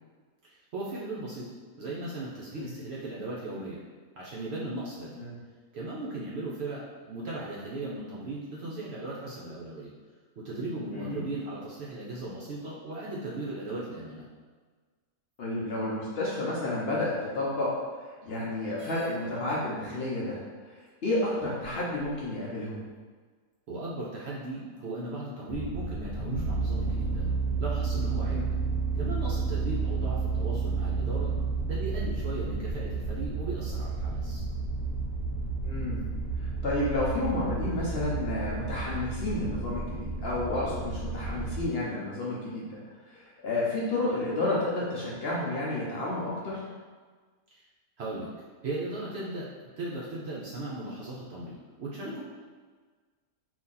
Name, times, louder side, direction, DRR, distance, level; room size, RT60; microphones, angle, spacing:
voice 1, 0.5-1.5 1.8-3.8 4.2-5.2 5.7-9.9 10.4-14.3 23.7-27.3 27.6-28.4 28.9-31.4 31.7-34.4 47.5-47.6 48.0-48.3 48.6-52.2, right 2 dB, 65° right, -5 dB, 0.7 m, -37 dB
voice 2, 15.4-20.4 20.7-22.8 28.3-28.5 35.6-36.0 36.4-46.7, left 2 dB, 55° left, -6 dB, 0.8 m, -31 dB
sound 1, 18.8-19.2 20.1-20.2 20.9-21.0 21.6-22.3, right 1 dB, 20° left, 0.7 m, -48 dB
sound 2, 25.5-41.7, right 4 dB, 75° left, 1.1 m, -31 dB
2.8 x 2.6 x 3.7 m, 1.5 s
omnidirectional pair, 1.5 m